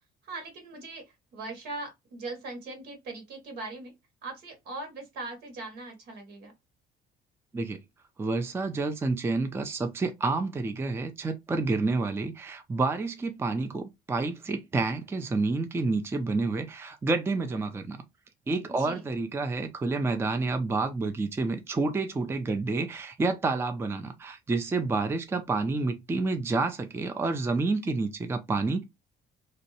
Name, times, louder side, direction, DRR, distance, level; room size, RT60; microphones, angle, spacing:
voice 1, 0.2-3.9 4.2-6.5 18.8-19.0, right 2 dB, 80° right, 1.4 m, -40 dB
voice 2, 8.2-18.0 18.5-28.8, right 3 dB, 15° right, 0.4 m, -29 dB
2.6 x 2.0 x 2.7 m
cardioid pair, 110°, 17 cm